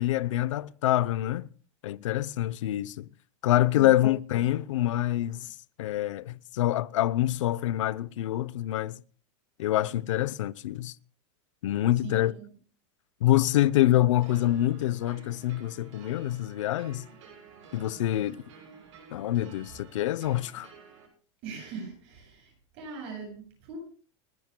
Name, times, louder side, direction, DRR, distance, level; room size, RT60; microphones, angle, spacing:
voice 1, 0.0-1.5 1.8-3.1 3.4-5.5 5.8-9.0 9.6-10.9 11.6-12.3 13.2-17.1 17.7-18.4 19.1-20.7, left 14 dB, 85° left, 0.7 m, -26 dB
voice 2, 12.0-12.5 21.4-23.8, right 5 dB, 35° right, 7.6 m, -41 dB
sound 1, 14.2-21.1, right 5 dB, 85° right, 6.7 m, -52 dB
30.0 x 11.0 x 2.2 m
supercardioid pair, 180°, 16 cm